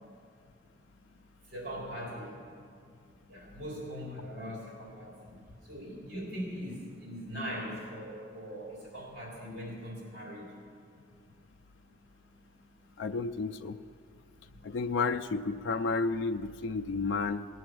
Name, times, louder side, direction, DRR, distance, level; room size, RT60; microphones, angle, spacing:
voice 1, 1.4-2.6 3.3-10.6 12.7-12.9 14.4-14.6, equal, 55° right, -4 dB, 3.8 m, -41 dB
voice 2, 13.0-13.8 14.6-17.5, left 4 dB, 85° left, 8 dB, 0.4 m, -31 dB
18.5 x 7.6 x 6.2 m, 2.3 s
head